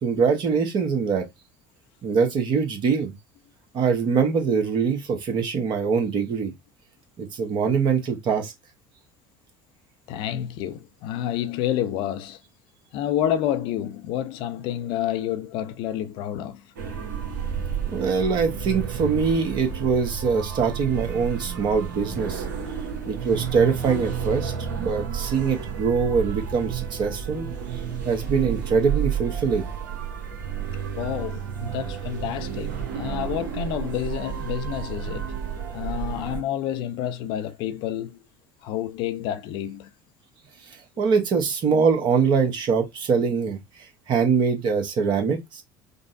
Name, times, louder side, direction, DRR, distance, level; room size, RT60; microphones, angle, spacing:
voice 1, 0.0-1.2 2.0-3.1 3.7-6.5 7.2-8.5 17.9-22.4 23.0-27.5 28.0-29.7 40.7-43.6 44.1-45.6, right 5 dB, 45° right, 1.1 m, -23 dB
voice 2, 10.1-12.4 12.9-16.7 27.9-28.0 31.0-35.3 35.7-38.2 38.6-39.9 41.0-41.1, left 11 dB, 50° left, 0.4 m, -29 dB
sound 1, 16.8-36.4, right 7 dB, 70° right, 0.9 m, -31 dB
5.2 x 2.0 x 2.5 m
figure-of-eight pair, 60°, 11 cm